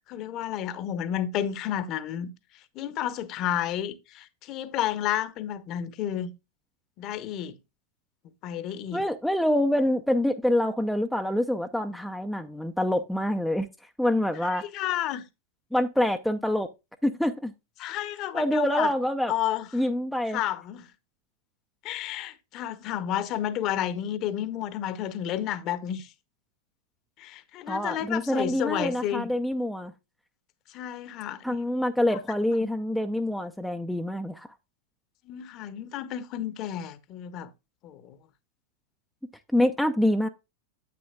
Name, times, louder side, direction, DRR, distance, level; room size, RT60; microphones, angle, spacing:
voice 1, 0.1-2.3 2.7-6.3 7.0-7.6 8.4-9.0 14.4-15.2 17.8-18.9 19.3-19.7 20.3-20.9 21.8-26.1 27.2-29.3 30.7-31.6 32.1-32.2 35.2-37.5 37.8-38.2, left 11 dB, 40° left, 0.9 m, -31 dB
voice 2, 8.9-13.7 14.0-14.6 15.7-16.7 17.0-17.5 18.3-19.3 19.7-20.4 27.7-29.9 31.4-34.5 39.5-40.3, left 1 dB, ahead, 0.6 m, -26 dB
9.5 x 8.6 x 2.3 m
figure-of-eight pair, 90°, 0 cm